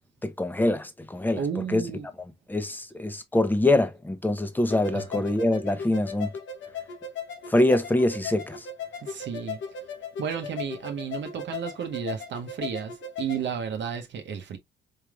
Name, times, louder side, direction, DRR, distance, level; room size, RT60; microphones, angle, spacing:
voice 1, 0.2-1.4 1.7-1.8 2.5-6.3 7.5-8.7, left 1 dB, 10° left, 0.8 m, -24 dB
voice 2, 1.4-2.1 4.9-5.2 9.0-9.6 10.2-14.6, right 7 dB, 65° right, 0.8 m, -33 dB
sound 1, 4.7-13.4, left 5 dB, 75° left, 1.2 m, -37 dB
4.6 x 3.3 x 2.3 m
cardioid pair, 90°, 20 cm